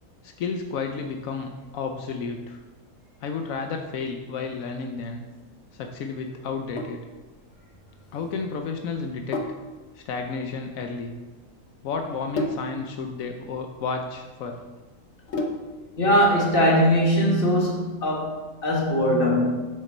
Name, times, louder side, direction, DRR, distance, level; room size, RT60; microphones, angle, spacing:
voice 1, 0.2-2.6 3.2-5.2 5.7-7.0 8.1-9.4 9.9-11.1 11.8-14.6, left 4 dB, 85° left, 4 dB, 1.1 m, -32 dB
Sink (filling or washing), 6.8-15.9, left 2 dB, 60° left, 1.1 m, -35 dB
voice 2, 16.0-19.5, equal, 45° left, -1 dB, 1.7 m, -21 dB
7.1 x 6.8 x 4.3 m, 1.2 s
omnidirectional pair, 1.4 m